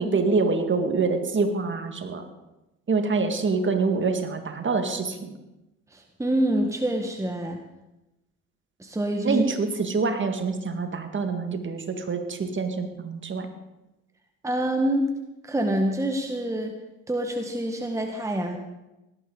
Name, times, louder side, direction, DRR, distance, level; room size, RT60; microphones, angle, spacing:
voice 1, 0.0-2.3 2.9-5.4 9.2-13.5, right 4 dB, 30° right, 6 dB, 2.0 m, -26 dB
voice 2, 5.9-7.6 8.8-9.4 14.4-15.1 15.4-16.7 17.1-18.6, right 1 dB, 10° right, 3 dB, 1.5 m, -26 dB
18.0 x 12.0 x 3.9 m, 0.97 s
hypercardioid pair, 65°, 39 cm